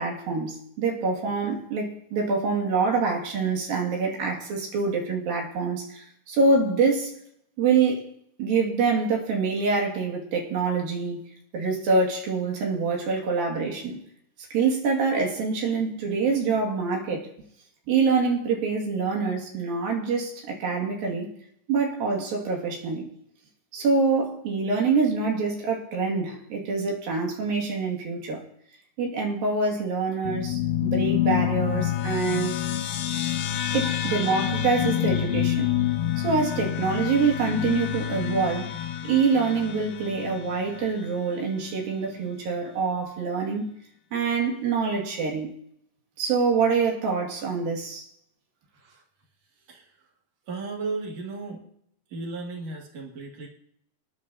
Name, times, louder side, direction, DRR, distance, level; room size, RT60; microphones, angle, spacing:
voice 1, 0.0-7.1 7.6-8.0 8.4-11.2 11.5-14.0 14.5-17.3 17.9-21.3 21.7-23.1 23.7-28.4 29.0-32.5 33.7-35.7 36.2-38.7 39.0-43.7 44.1-45.5 46.2-48.0, right 4 dB, 85° right, 0 dB, 4.0 m, -25 dB
sound 1, 30.2-41.0, left 11 dB, 80° left, 2.4 m, -27 dB
voice 2, 50.5-51.6 52.1-53.5, right 3 dB, 50° right, -1 dB, 3.2 m, -35 dB
26.5 x 10.5 x 2.8 m, 0.70 s
omnidirectional pair, 4.0 m